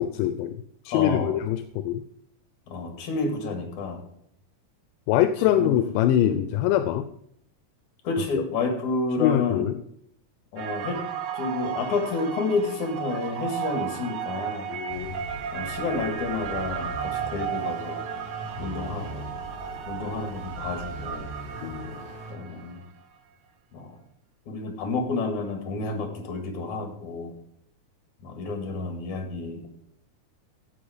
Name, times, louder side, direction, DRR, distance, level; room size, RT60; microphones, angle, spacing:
voice 1, 0.0-2.0 5.1-7.0 8.3-8.4 9.2-9.7 14.7-15.2 21.6-22.0, left 11 dB, 85° left, 10 dB, 2.2 m, -24 dB
voice 2, 0.9-1.3 2.7-4.0 5.5-5.8 6.2-6.4 8.0-9.6 10.5-11.0 11.3-14.7 15.5-18.0 18.6-19.4 19.9-21.3 22.3-22.8 23.7-23.9 24.5-27.3 28.2-29.7, left 3 dB, 65° left, 5 dB, 3.2 m, -30 dB
sound 1, 10.6-22.9, right 9 dB, 85° right, 2.6 m, -34 dB
sound 2, 14.9-22.3, equal, 40° left, 3.4 m, -40 dB
15.5 x 5.3 x 5.1 m, 0.72 s
omnidirectional pair, 3.8 m